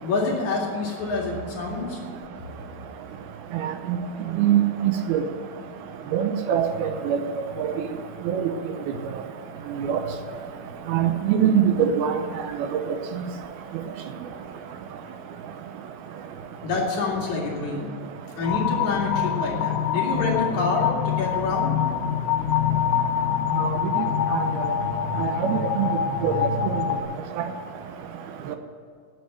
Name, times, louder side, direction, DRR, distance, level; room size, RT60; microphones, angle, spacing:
voice 1, 0.0-2.0 16.6-17.9 18.4-21.8 23.9-24.0, left 3 dB, 50° left, -3 dB, 3.2 m, -27 dB
voice 2, 4.4-5.2 6.1-7.2 8.3-8.5 9.9-10.0 10.9-12.1 24.0-24.1 24.3-24.5 25.2-25.9 26.2-26.3, right 9 dB, 80° right, 7 dB, 2.5 m, -22 dB
sound 1, 18.4-27.0, left 9 dB, 90° left, 1.7 m, -25 dB
10.0 x 9.0 x 7.8 m, 2.2 s
omnidirectional pair, 4.6 m